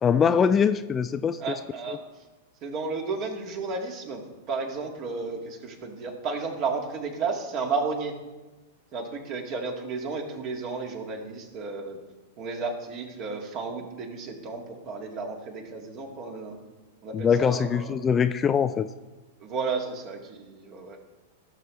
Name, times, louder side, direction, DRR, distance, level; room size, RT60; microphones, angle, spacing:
voice 1, 0.0-1.5 17.1-18.9, left 7 dB, 25° left, 11 dB, 0.3 m, -23 dB
voice 2, 1.4-2.0 2.6-8.2 8.9-12.0 12.4-16.6 17.0-18.0 19.4-21.0, right 4 dB, 40° right, 3 dB, 1.8 m, -33 dB
16.0 x 6.8 x 3.1 m, 1.2 s
figure-of-eight pair, 100°, 0 cm